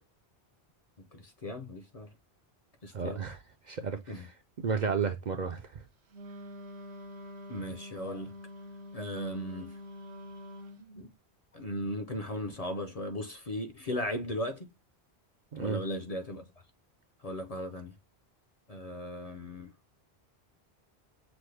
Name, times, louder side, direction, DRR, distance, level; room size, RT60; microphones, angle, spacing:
voice 1, 1.1-2.1 2.8-3.2 4.1-4.2 7.5-8.3 8.9-9.8 10.9-11.1 11.5-14.7 15.6-16.4 17.2-17.9 18.7-19.7, left 1 dB, 45° left, 0.6 m, -37 dB
voice 2, 2.9-3.4 3.7-5.8 15.5-15.8, right 5 dB, 55° right, 0.5 m, -33 dB
Wind instrument woodwind instrument, 6.1-10.8, left 1 dB, 80° right, 0.9 m, -46 dB
6.0 x 2.1 x 3.2 m
omnidirectional pair, 1.1 m